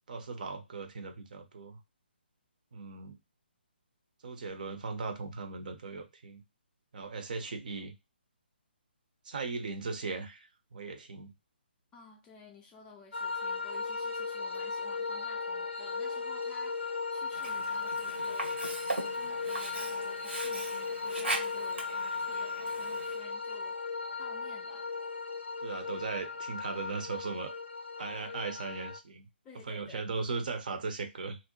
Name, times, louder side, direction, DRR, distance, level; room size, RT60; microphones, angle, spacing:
voice 1, 0.1-1.8 2.7-3.2 4.2-6.4 6.9-7.9 9.2-11.3 25.6-27.5 28.0-29.3 29.7-31.4, right 4 dB, 50° right, 0.6 m, -38 dB
voice 2, 11.9-24.9 29.4-30.0, left 5 dB, 15° left, 0.3 m, -54 dB
sound 1, 13.1-29.0, left 4 dB, 80° left, 0.4 m, -36 dB
Sink (filling or washing), 17.3-23.3, right 2 dB, 80° right, 0.9 m, -39 dB
2.5 x 2.1 x 2.8 m
figure-of-eight pair, 140°, 6 cm